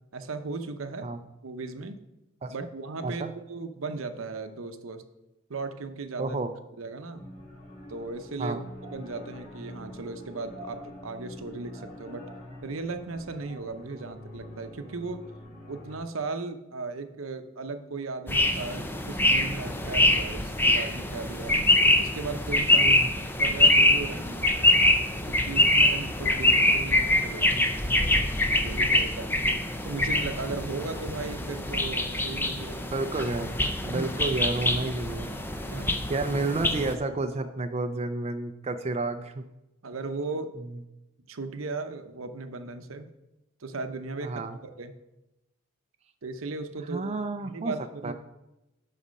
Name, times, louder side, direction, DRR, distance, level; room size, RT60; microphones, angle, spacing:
voice 1, 0.1-1.1 1.4-2.0 2.5-5.0 5.5-6.4 6.8-7.2 7.9-8.6 8.9-12.2 12.6-15.2 15.7-21.6 22.0-24.9 25.3-27.5 28.6-29.3 29.8-32.9 33.8-34.1 35.7-36.0 39.8-40.5 41.3-43.1 43.6-44.3 44.6-44.9 46.2-47.2 47.4-48.1, right 3 dB, 75° right, 8 dB, 0.8 m, -36 dB
voice 2, 6.2-6.5 8.4-8.6 22.8-23.1 32.9-33.5 33.8-35.3 36.1-39.5 44.2-44.6 46.8-47.7 48.0-48.1, right 3 dB, 30° right, 6 dB, 0.5 m, -30 dB
sound 1, 7.1-16.0, left 1 dB, 40° left, 3.4 m, -45 dB
sound 2, 18.3-36.9, left 1 dB, 10° left, 0.6 m, -24 dB
10.5 x 4.2 x 6.4 m, 0.96 s
head